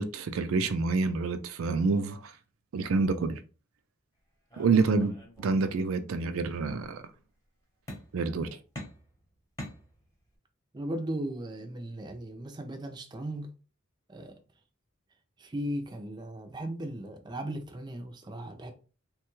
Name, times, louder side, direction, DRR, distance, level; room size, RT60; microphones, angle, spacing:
voice 1, 0.0-2.3 2.7-3.4 4.6-7.0 8.1-8.5, right 4 dB, 85° right, 0.4 m, -27 dB
sound 1, 4.5-5.9 6.2-6.9 7.9-8.4 8.7-10.3, left 1 dB, 15° left, 0.8 m, -45 dB
voice 2, 10.7-13.5 14.1-14.4 15.4-18.7, right 1 dB, 20° right, 0.4 m, -37 dB
3.1 x 2.2 x 3.0 m
head